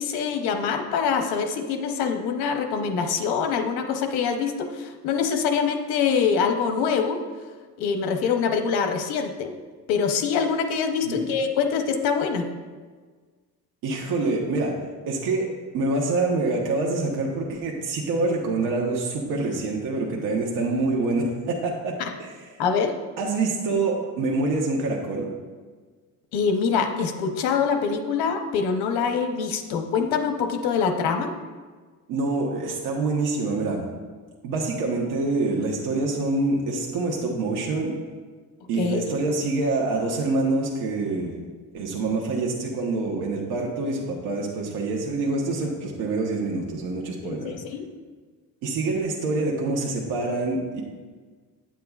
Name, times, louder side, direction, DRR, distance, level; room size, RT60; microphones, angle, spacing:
voice 1, 0.0-7.2 7.8-9.5 9.9-12.5 22.0-22.1 22.6-22.9 26.3-31.3 38.8-39.1 47.2-47.9, left 6 dB, 85° left, 6 dB, 0.9 m, -24 dB
voice 2, 13.8-14.7 15.1-15.5 15.7-22.4 23.2-25.3 32.1-33.9 34.4-38.0 38.7-41.3 41.7-47.6 48.6-50.8, right 3 dB, 85° right, -2 dB, 1.2 m, -26 dB
9.2 x 8.5 x 2.4 m, 1.4 s
cardioid pair, 150°, 37 cm